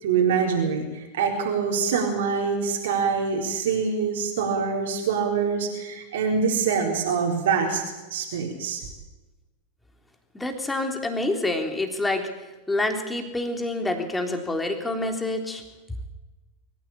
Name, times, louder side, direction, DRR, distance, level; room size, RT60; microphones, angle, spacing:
voice 1, 0.0-7.8 8.1-8.8, right 6 dB, 55° right, 0 dB, 4.2 m, -25 dB
voice 2, 10.3-12.3 12.7-15.6, left 2 dB, 10° left, 4 dB, 3.5 m, -27 dB
24.0 x 15.0 x 8.7 m, 1.1 s
figure-of-eight pair, 90°, 0 cm